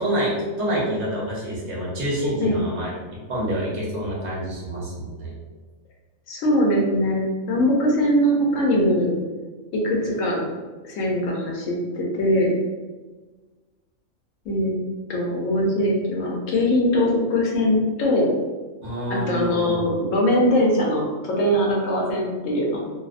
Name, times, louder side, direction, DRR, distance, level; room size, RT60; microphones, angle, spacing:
voice 1, 0.0-5.3 18.8-19.8, right 1 dB, 60° right, -4 dB, 1.0 m, -27 dB
voice 2, 6.3-9.1 9.8-10.4 10.8-12.5 14.5-14.8 15.1-18.3 19.1-22.9, left 1 dB, 70° left, -2 dB, 0.9 m, -21 dB
2.6 x 2.0 x 2.4 m, 1.3 s
omnidirectional pair, 1.5 m